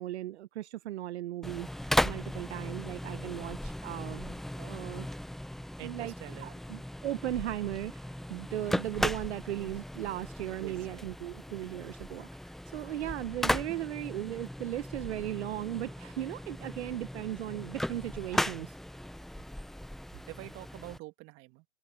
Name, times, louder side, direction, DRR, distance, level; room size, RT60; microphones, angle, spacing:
voice 1, 0.0-1.7 2.0-5.1 5.8-6.1 6.4-18.7, right 13 dB, 65° right, 1.0 m, -37 dB
sound 1, 1.4-21.0, left 1 dB, ahead, 0.9 m, -37 dB
voice 2, 3.1-3.4 5.8-6.5 10.6-11.8 13.7-13.8 20.3-21.6, right 22 dB, 35° right, 2.0 m, -47 dB
hypercardioid pair, 130°, 36 cm